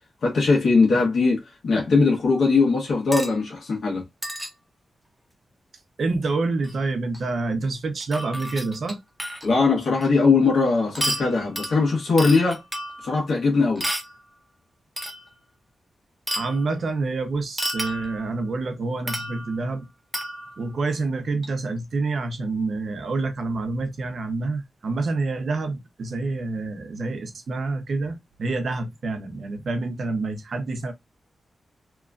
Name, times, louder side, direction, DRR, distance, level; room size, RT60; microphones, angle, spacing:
voice 1, 0.2-4.0 9.4-12.6 13.0-13.8, left 4 dB, 70° left, 1.1 m, -20 dB
sound 1, 3.1-3.4 4.2-4.5 6.6-6.7 7.1-7.2 8.0-9.5 10.0-10.1 10.9-13.2 13.8-14.2 15.0-15.3 16.3-16.7 17.6-18.4 19.1-19.7 20.1-20.7 21.4-21.5, equal, 10° right, 0.7 m, -31 dB
voice 2, 6.0-9.0 16.3-19.9 20.6-30.9, right 3 dB, 65° right, 0.7 m, -27 dB
2.9 x 2.3 x 2.4 m
cardioid pair, 85°, 0 cm